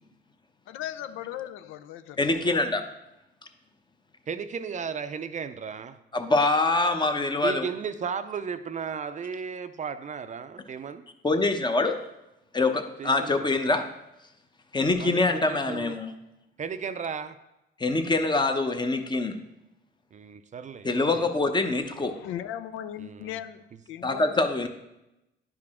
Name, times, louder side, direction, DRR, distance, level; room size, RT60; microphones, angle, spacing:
voice 1, 0.7-2.2 22.1-24.4, left 11 dB, 90° left, 0.4 m, -37 dB
voice 2, 2.2-2.8 6.1-7.6 11.2-12.0 12.5-13.8 14.7-16.1 17.8-19.4 20.8-22.1 24.0-24.7, left 2 dB, 20° left, 0.8 m, -24 dB
voice 3, 4.3-6.0 7.4-11.0 13.0-13.5 15.0-15.9 16.6-17.4 20.1-21.3 23.0-23.3 23.7-23.8, right 6 dB, 40° right, 0.5 m, -35 dB
10.5 x 4.8 x 3.6 m
cardioid pair, 90°, 20 cm